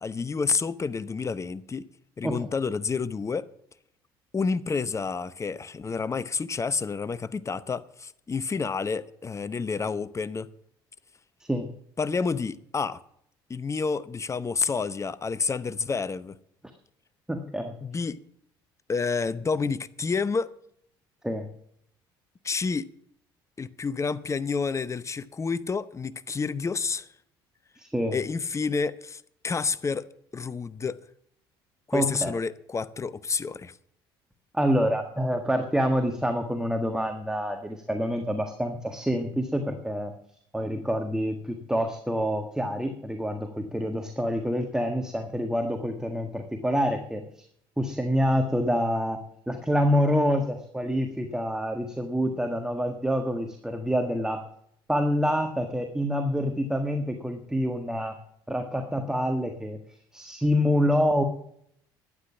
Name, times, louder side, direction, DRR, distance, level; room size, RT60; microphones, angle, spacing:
voice 1, 0.0-1.9 2.2-3.5 4.3-10.5 12.0-13.0 13.5-16.4 17.8-18.2 18.9-20.5 22.4-22.9 23.6-27.1 28.1-30.1 30.3-31.0 31.9-33.7, left 5 dB, 25° left, 0.8 m, -29 dB
voice 2, 17.3-17.7 21.2-21.5 27.8-28.2 31.9-32.3 34.5-40.1 40.5-47.4 47.8-49.2 49.5-54.4 54.9-58.1 58.5-59.8 60.1-61.2, equal, 5° right, 1.6 m, -27 dB
12.0 x 9.7 x 7.2 m
hypercardioid pair, 70°, 12 cm